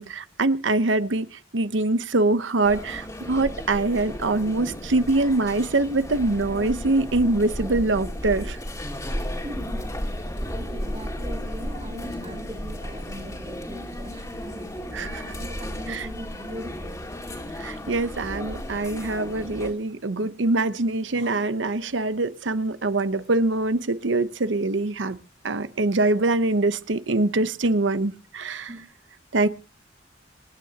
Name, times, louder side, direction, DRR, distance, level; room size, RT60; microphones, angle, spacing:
voice 1, 0.0-8.6 14.9-15.3 15.9-16.0 17.6-25.2 25.4-28.7 29.3-29.5, right 2 dB, 80° right, 0.9 m, -24 dB
sound 1, 2.6-19.7, equal, 20° left, 2.2 m, -34 dB
voice 2, 9.4-9.9 10.5-14.7 15.2-17.0 28.7-28.8, equal, 35° right, 2.6 m, -40 dB
27.5 x 9.4 x 2.9 m
head